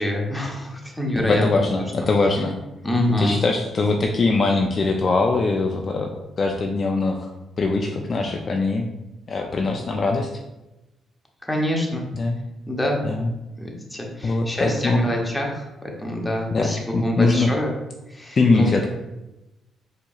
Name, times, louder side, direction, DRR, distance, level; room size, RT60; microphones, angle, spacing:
voice 1, 0.0-1.5 2.8-3.4 11.4-12.1 12.7-13.0 13.6-17.7 18.1-18.7, left 1 dB, 10° left, 0 dB, 0.8 m, -25 dB
voice 2, 1.2-2.6 3.2-6.1 6.4-7.3 7.6-8.9 9.3-10.3 12.1-12.4 13.0-13.3 14.2-15.1 16.5-17.5 18.4-18.9, left 3 dB, 40° left, 2 dB, 0.3 m, -22 dB
4.6 x 2.8 x 2.3 m, 0.99 s
cardioid pair, 90°, 0 cm